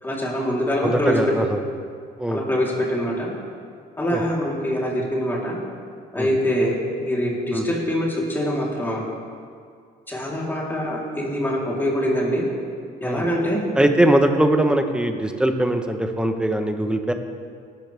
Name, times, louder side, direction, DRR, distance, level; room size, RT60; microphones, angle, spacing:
voice 1, 0.0-1.5 2.3-3.3 4.0-5.6 6.1-9.0 10.1-12.4 13.0-13.7, equal, 10° left, -4 dB, 3.9 m, -24 dB
voice 2, 0.8-1.6 2.2-2.4 4.1-4.2 6.2-6.3 7.5-7.7 13.0-13.3 13.8-17.1, right 1 dB, 5° right, 6 dB, 1.1 m, -21 dB
18.5 x 12.5 x 3.6 m, 2.1 s
cardioid pair, 110°, 17 cm